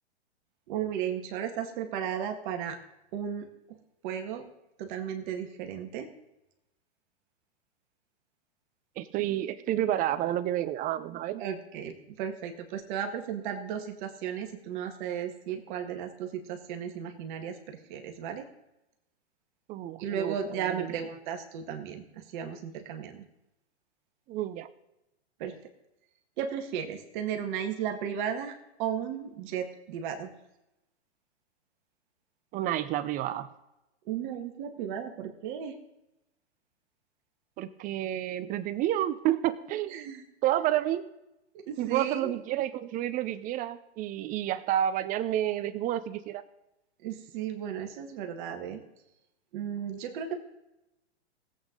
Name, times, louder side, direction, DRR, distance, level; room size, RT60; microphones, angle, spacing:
voice 1, 0.7-2.8 3.1-3.8 4.0-4.5 4.8-6.1 11.4-18.5 20.0-23.2 25.4-25.5 26.4-28.5 28.8-30.3 34.1-35.8 39.9-40.2 41.5-42.3 47.0-48.8 49.5-50.3, right 8 dB, 45° right, 5 dB, 1.9 m, -35 dB
voice 2, 9.0-11.4 19.7-20.3 20.7-20.9 24.3-24.7 32.5-33.5 37.6-40.1 40.4-41.1 41.8-46.4, right 12 dB, 25° right, 13 dB, 0.6 m, -30 dB
19.5 x 8.3 x 3.9 m, 0.92 s
hypercardioid pair, 125°, 33 cm